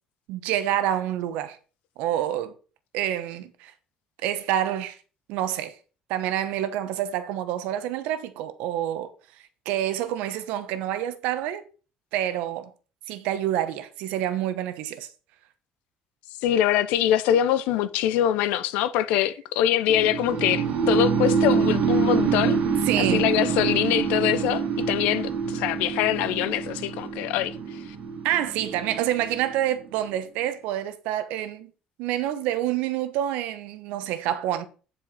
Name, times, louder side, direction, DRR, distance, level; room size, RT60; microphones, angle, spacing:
voice 1, 0.3-1.6 2.0-2.5 2.9-3.7 4.2-5.0 5.3-5.8 6.1-9.1 9.6-11.6 12.1-12.7 13.1-15.1 22.8-23.3 28.2-31.7 32.0-34.6, right 12 dB, 85° right, 1.1 m, -27 dB
voice 2, 16.4-22.6 23.0-27.8, left 11 dB, 85° left, 0.8 m, -24 dB
sound 1, 19.9-29.9, right 6 dB, 60° right, 1.8 m, -26 dB
10.0 x 4.9 x 4.3 m
cardioid pair, 140°, 2 cm